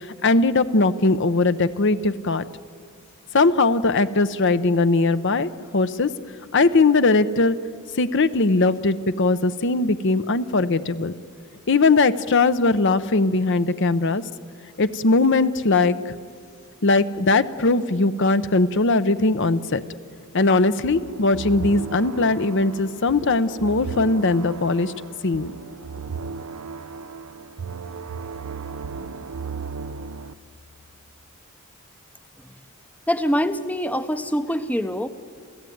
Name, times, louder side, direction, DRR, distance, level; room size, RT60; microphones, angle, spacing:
voice 1, 0.2-2.4 3.3-6.1 6.5-7.6 8.0-11.1 11.7-14.2 14.8-16.1 16.8-19.8 20.3-24.9 25.2-25.5, left 3 dB, 55° left, 12 dB, 0.8 m, -20 dB
sound 1, 20.8-30.3, right 5 dB, 85° right, 0.7 m, -35 dB
voice 2, 33.1-35.1, equal, 5° left, 11 dB, 0.7 m, -24 dB
28.5 x 15.5 x 9.4 m, 2.1 s
head